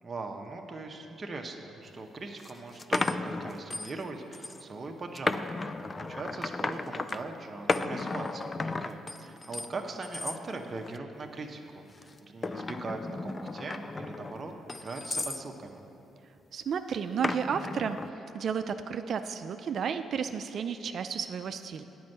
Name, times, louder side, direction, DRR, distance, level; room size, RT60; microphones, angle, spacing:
voice 1, 0.0-15.8, right 3 dB, 35° right, 2 dB, 0.8 m, -40 dB
sound 1, 1.8-1.9 2.4-4.0 4.3-4.6 5.1-7.2 7.7-9.7 10.0-10.4 10.9-11.2 12.0-15.4 17.2-18.1, left 3 dB, 30° left, 0.4 m, -34 dB
voice 2, 16.5-21.8, right 7 dB, 60° right, 9 dB, 0.3 m, -32 dB
9.3 x 5.2 x 7.7 m, 2.9 s
cardioid pair, 90°, 0 cm